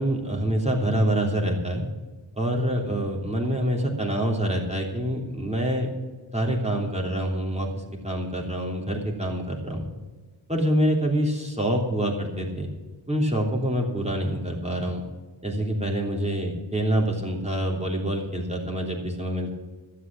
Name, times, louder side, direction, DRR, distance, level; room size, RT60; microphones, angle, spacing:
voice 1, 0.0-1.8 2.3-5.9 6.3-7.7 8.0-9.9 10.5-12.7 13.1-15.0 15.4-19.5, right 1 dB, 15° right, 0 dB, 3.2 m, -26 dB
12.5 x 8.6 x 8.7 m, 1.3 s
wide cardioid pair, 70°, 49 cm